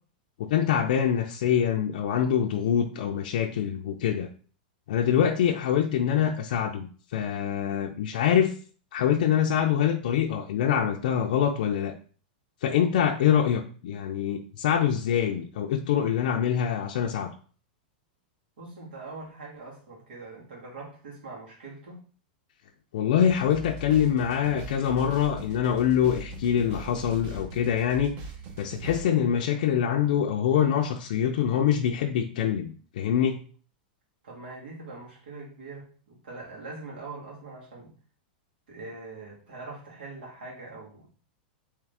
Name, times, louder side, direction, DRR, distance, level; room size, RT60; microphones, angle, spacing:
voice 1, 0.4-4.3 4.9-8.6 8.9-11.9 12.6-17.3 22.9-28.2 28.6-33.4, left 9 dB, 70° left, 2 dB, 0.4 m, -25 dB
voice 2, 18.6-22.0 34.2-37.9 38.7-41.1, right 3 dB, 85° right, -2 dB, 2.0 m, -42 dB
sound 1, 23.2-29.1, right 2 dB, 45° right, 0.8 m, -40 dB
3.6 x 3.2 x 3.3 m, 0.41 s
supercardioid pair, 150°, 5 cm